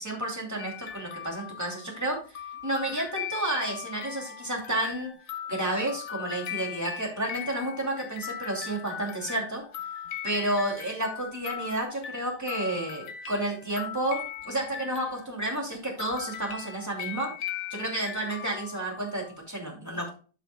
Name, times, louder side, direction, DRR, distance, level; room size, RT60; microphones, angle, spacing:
voice 1, 0.0-2.2 2.6-5.1 5.5-9.6 10.2-17.3 17.7-20.1, right 1 dB, 10° right, 0 dB, 2.5 m, -31 dB
sound 1, 0.6-15.6 16.0-19.4, left 9 dB, 55° left, 1.2 m, -39 dB
13.5 x 5.7 x 2.2 m, 0.37 s
omnidirectional pair, 1.9 m